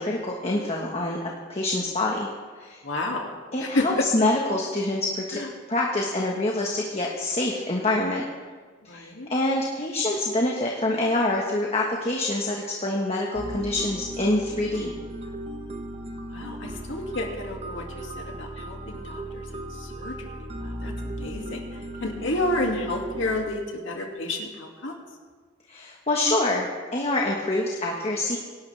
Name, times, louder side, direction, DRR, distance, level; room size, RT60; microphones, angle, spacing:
voice 1, 0.0-2.3 2.6-2.8 3.5-5.4 5.7-8.2 8.8-14.9 25.7-28.4, left 2 dB, 30° left, -1 dB, 1.4 m, -26 dB
voice 2, 2.8-4.0 5.3-5.5 8.9-9.3 16.2-21.6 22.0-24.9, left 2 dB, 70° left, 1 dB, 2.3 m, -31 dB
sound 1, 13.3-23.4, right 1 dB, 35° right, 1.1 m, -36 dB
23.5 x 12.0 x 3.4 m, 1.5 s
head